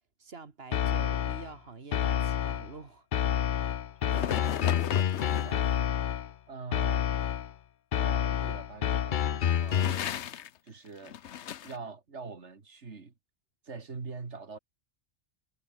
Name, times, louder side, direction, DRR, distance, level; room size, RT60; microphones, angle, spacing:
voice 1, 0.2-3.1, right 4 dB, 60° right, 2.0 m, -47 dB
sound 1, 0.7-1.5 1.9-2.7 3.1-6.3 6.7-7.5 7.9-10.1, left 9 dB, 55° left, 0.7 m, -28 dB
sound 2, 4.1-5.6 9.5-10.6 10.9-11.8, left 9 dB, 75° left, 1.1 m, -36 dB
voice 2, 4.1-4.4 5.2-5.8 6.5-7.1 7.9-10.0 10.6-11.2 11.6-13.2 13.6-14.6, right 4 dB, 75° right, 2.5 m, -43 dB
omnidirectional pair, 1.2 m